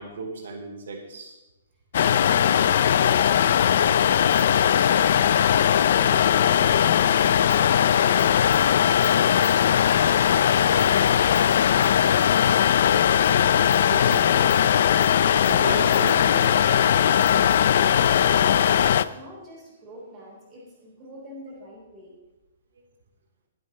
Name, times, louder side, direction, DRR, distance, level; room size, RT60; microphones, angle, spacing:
voice 1, 0.0-1.3 13.9-14.5 15.4-16.6, right 3 dB, 70° right, 1 dB, 3.4 m, -35 dB
sound 1, 1.9-19.0, left 9 dB, 45° left, 0.4 m, -19 dB
voice 2, 1.9-3.1 3.5-11.2 18.9-22.2, equal, 15° right, -4 dB, 4.2 m, -45 dB
sound 2, 4.3-18.3, left 4 dB, 10° left, 2.3 m, -51 dB
21.0 x 8.6 x 3.2 m, 1.0 s
hypercardioid pair, 175°, 0 cm